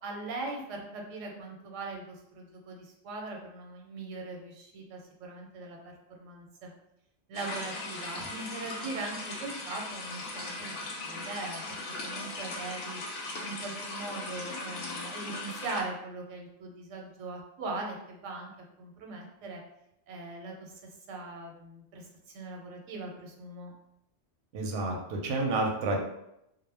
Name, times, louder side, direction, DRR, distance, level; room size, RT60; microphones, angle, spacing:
voice 1, 0.0-6.7 7.3-10.8 11.0-13.0 13.4-18.5 18.8-19.6 20.1-20.7 21.1-23.7, right 3 dB, 90° right, 1 dB, 0.9 m, -40 dB
sound 1, 7.3-15.8, left 2 dB, 85° left, 0.9 m, -38 dB
voice 2, 24.5-26.0, right 2 dB, 65° right, 0 dB, 0.7 m, -29 dB
2.1 x 2.0 x 3.2 m, 0.82 s
omnidirectional pair, 1.2 m